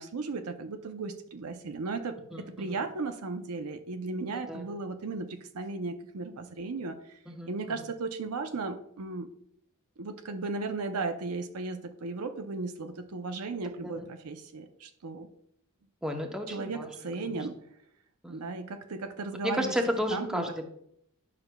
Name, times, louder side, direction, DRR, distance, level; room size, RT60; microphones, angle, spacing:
voice 1, 0.0-7.2 7.5-9.3 10.0-15.3 16.5-17.6 18.3-19.7 20.1-20.4, right 3 dB, 75° right, 7 dB, 0.6 m, -36 dB
voice 2, 2.3-2.8 4.5-4.8 7.3-7.9 13.8-14.1 16.0-16.9 17.2-17.4 18.2-18.6 19.4-20.7, equal, 5° right, 3 dB, 0.7 m, -33 dB
9.8 x 5.9 x 2.2 m, 0.71 s
head